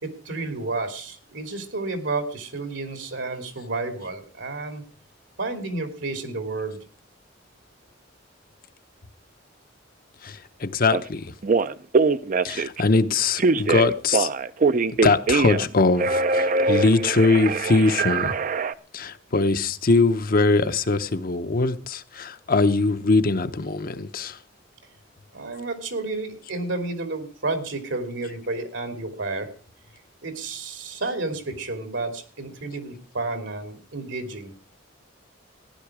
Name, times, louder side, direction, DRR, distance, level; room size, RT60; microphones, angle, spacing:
voice 1, 0.0-4.8 5.4-6.8 25.3-29.5 30.2-34.5, right 3 dB, 80° right, 2.6 m, -31 dB
voice 2, 10.2-11.3 12.4-14.3 15.0-18.3 18.9-24.4, left 3 dB, 50° left, 0.8 m, -22 dB
Telephone, 10.9-11.0 11.4-12.8 13.4-15.7 16.0-18.7, right 4 dB, 45° right, 0.5 m, -22 dB
15.0 x 10.5 x 4.8 m
head